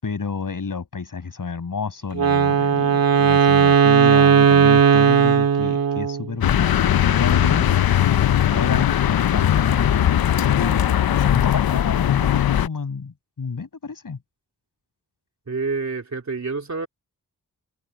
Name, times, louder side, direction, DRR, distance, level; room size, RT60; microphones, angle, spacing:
voice 1, 0.0-7.7 8.1-14.2, left 5 dB, 65° left, 6.6 m, -30 dB
Wind instrument woodwind instrument, 2.1-6.3, right 7 dB, 80° right, 1.8 m, -16 dB
sound 1, 6.4-12.7, left 11 dB, 85° left, 0.7 m, -19 dB
voice 2, 15.5-16.9, right 4 dB, 50° right, 3.1 m, -28 dB
cardioid pair, 60°, 35 cm